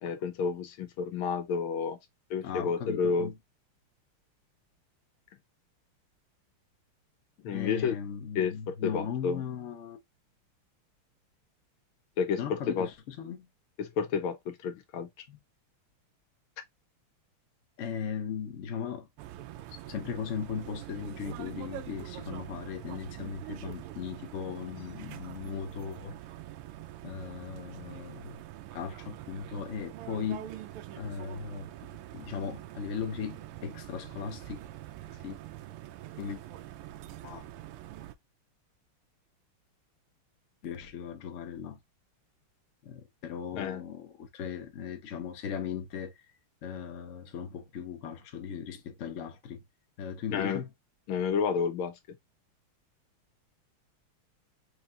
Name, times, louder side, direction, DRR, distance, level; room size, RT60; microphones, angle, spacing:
voice 1, 0.0-2.0 2.3-3.3 7.4-8.0 8.3-9.4 12.2-12.9 13.8-15.1 43.5-43.8 50.3-50.6 51.1-51.9, left 6 dB, 80° left, 1.6 m, -30 dB
voice 2, 2.4-3.4 7.5-10.0 12.4-13.5 15.3-15.4 17.8-19.1 19.7-26.2 27.0-28.4 28.7-30.5 30.9-34.6 35.2-35.4 36.2-36.4 37.2-37.5 40.6-41.8 42.8-46.1 46.6-49.6 50.0-50.7, left 7 dB, 60° left, 0.8 m, -38 dB
sound 1, 19.2-38.1, right 13 dB, 90° right, 1.5 m, -44 dB
4.6 x 2.9 x 2.3 m
omnidirectional pair, 2.4 m